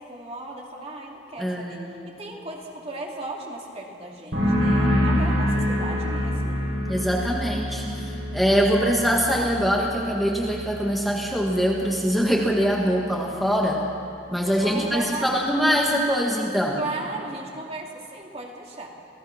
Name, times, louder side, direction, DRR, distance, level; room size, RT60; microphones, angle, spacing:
voice 1, 0.0-6.6 14.6-15.3 16.8-18.9, right 2 dB, 35° right, -1 dB, 2.6 m, -36 dB
voice 2, 1.4-1.9 6.9-13.8 14.3-16.8, equal, ahead, -2 dB, 1.7 m, -23 dB
sound 1, 4.3-11.8 12.1-12.6, equal, 70° right, 6.0 m, -26 dB
27.5 x 16.5 x 5.9 m, 2.6 s
head